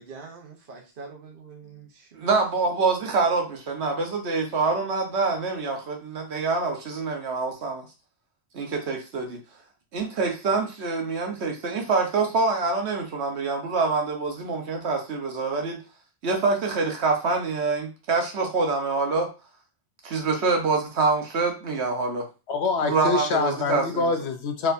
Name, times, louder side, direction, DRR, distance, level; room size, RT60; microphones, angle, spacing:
voice 1, 0.0-2.3, right 4 dB, 55° right, 2 dB, 1.1 m, -44 dB
voice 2, 2.2-7.8 8.5-9.4 9.9-15.8 16.2-19.3 20.0-22.3 22.8-24.1, right 4 dB, 75° right, 2 dB, 1.3 m, -25 dB
voice 3, 22.5-24.7, left 4 dB, 75° left, 6 dB, 1.0 m, -25 dB
4.5 x 3.6 x 2.6 m, 0.31 s
omnidirectional pair, 1.1 m